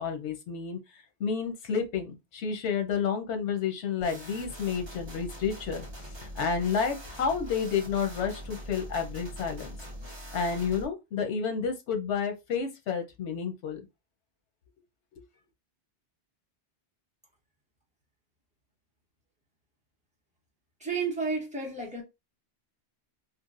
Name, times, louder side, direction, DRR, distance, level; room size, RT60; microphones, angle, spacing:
voice 1, 0.0-9.7 10.3-13.8, left 6 dB, 90° left, 1.1 m, -30 dB
sound 1, 4.0-10.9, equal, 30° right, 0.7 m, -43 dB
voice 2, 20.8-22.0, right 4 dB, 5° right, 1.0 m, -31 dB
3.1 x 2.5 x 2.5 m
omnidirectional pair, 1.1 m